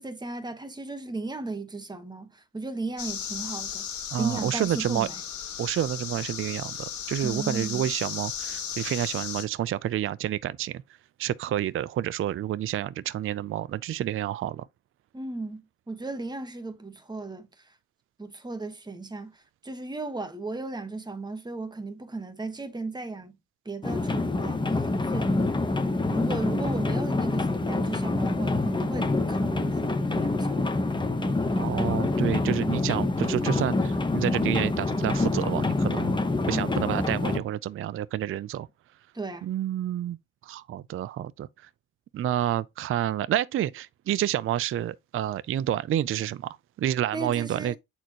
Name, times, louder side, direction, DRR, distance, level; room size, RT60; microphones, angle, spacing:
voice 1, 0.0-3.9 4.2-5.1 7.2-7.9 15.1-17.5 18.2-19.4 19.6-23.3 23.6-25.3 26.1-30.8 31.2-31.4 36.5-36.8 39.1-39.5 47.1-47.8, right 3 dB, 15° right, 1.2 m, -35 dB
sound 1, 3.0-9.5, left 8 dB, 70° left, 2.0 m, -35 dB
voice 2, 4.1-5.1 5.6-10.8 11.2-14.7 31.6-36.1 36.5-38.7 39.4-40.2 40.4-41.7 42.1-47.8, right 12 dB, 45° right, 0.4 m, -29 dB
sound 2, 23.8-37.4, left 2 dB, 15° left, 0.9 m, -26 dB
7.9 x 4.3 x 2.9 m
cardioid pair, 90°, 30 cm